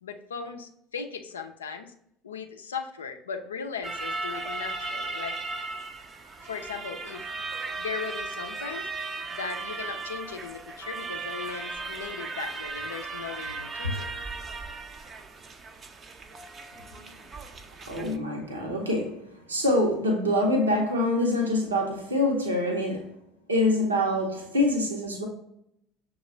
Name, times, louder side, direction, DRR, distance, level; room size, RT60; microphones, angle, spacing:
voice 1, 0.0-1.9 2.2-5.4 6.4-7.3 7.8-8.9 9.3-14.1, left 5 dB, 75° left, 0.4 m, -37 dB
sound 1, 3.8-18.2, right 3 dB, 30° right, 0.5 m, -36 dB
voice 2, 17.9-23.1 23.5-25.3, left 1 dB, 80° right, 0.8 m, -25 dB
6.4 x 2.3 x 3.1 m
figure-of-eight pair, 65°, 0 cm